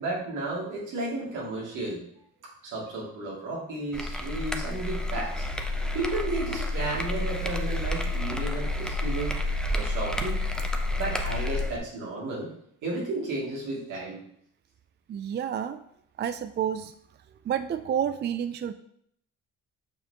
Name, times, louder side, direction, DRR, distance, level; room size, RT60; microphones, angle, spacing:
voice 1, 0.0-2.0 2.6-5.5 5.9-9.3 9.8-10.4 11.0-12.5 12.8-14.2, right 2 dB, 90° right, -5 dB, 2.5 m, -33 dB
sound 1, 3.9-11.8, left 1 dB, ahead, 0.7 m, -29 dB
voice 2, 15.1-15.8 16.2-16.9 17.4-18.7, right 9 dB, 35° right, 11 dB, 0.4 m, -29 dB
7.0 x 5.7 x 2.9 m, 0.70 s
cardioid pair, 90°, 30 cm